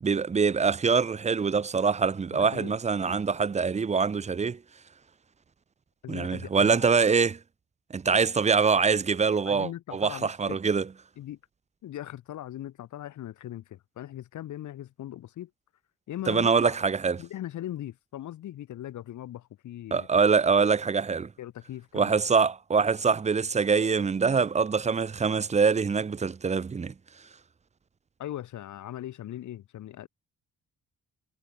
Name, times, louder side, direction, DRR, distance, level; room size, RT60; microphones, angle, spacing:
voice 1, 0.0-4.6 6.1-7.4 7.9-10.9 16.3-17.2 19.9-21.3 21.9-26.9, right 5 dB, 25° right, 0.6 m, -24 dB
voice 2, 2.3-2.8 6.0-6.9 9.5-10.6 11.2-11.4 11.8-15.5 16.1-16.8 17.2-20.1 21.4-22.2 28.2-30.1, left 12 dB, 75° left, 2.5 m, -39 dB
cardioid pair, 90°, 30 cm